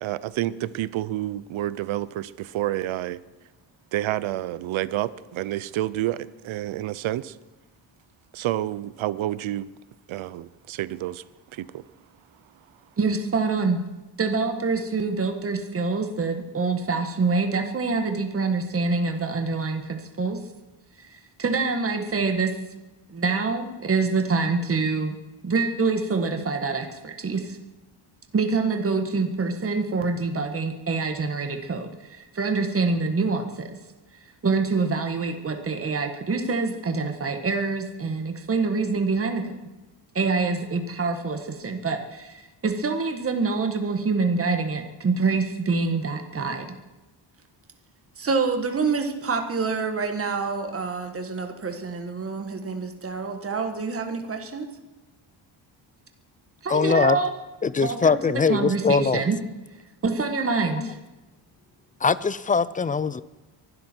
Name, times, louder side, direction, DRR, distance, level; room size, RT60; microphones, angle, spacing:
voice 1, 0.0-3.2 3.9-7.4 8.3-9.7 10.1-11.2 11.5-11.8 16.3-16.4, right 14 dB, 90° right, 0.8 m, -29 dB
voice 2, 13.0-13.8 14.2-20.4 21.0-21.1 21.4-22.5 23.1-25.2 25.4-27.6 28.3-33.8 34.4-39.5 40.1-46.7 48.2-54.7 56.6-57.3 57.8-59.4 60.0-61.0, right 4 dB, 30° right, 1.6 m, -26 dB
voice 3, 56.7-57.2 57.6-59.3 60.8-60.9 62.0-63.2, left 5 dB, 20° left, 0.4 m, -22 dB
23.5 x 12.0 x 4.6 m
cardioid pair, 140°, 46 cm